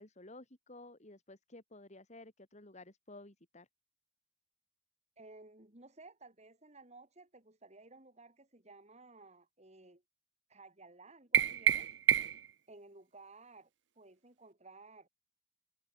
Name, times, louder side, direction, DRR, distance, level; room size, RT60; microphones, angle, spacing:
voice 1, 0.0-3.7, left 2 dB, 40° left, 3.5 m, -54 dB
voice 2, 5.2-10.0 10.5-11.9 12.7-13.7 14.0-15.1, right 3 dB, 40° right, 4.0 m, -56 dB
sound 1, 11.3-12.5, right 9 dB, 75° right, 0.7 m, -28 dB
head